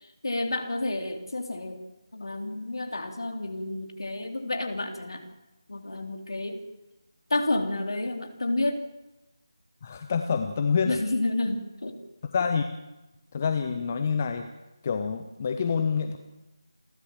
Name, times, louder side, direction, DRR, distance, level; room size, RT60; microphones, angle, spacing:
voice 1, 0.2-1.8 2.1-5.2 5.7-6.6 7.3-8.8 10.8-12.0, left 2 dB, 60° left, 4 dB, 3.7 m, -30 dB
voice 2, 9.8-11.0 12.3-12.7 13.3-14.5 14.8-16.2, left 6 dB, 25° left, 6 dB, 1.1 m, -27 dB
29.0 x 12.0 x 7.6 m, 1.0 s
figure-of-eight pair, 160°, 3 cm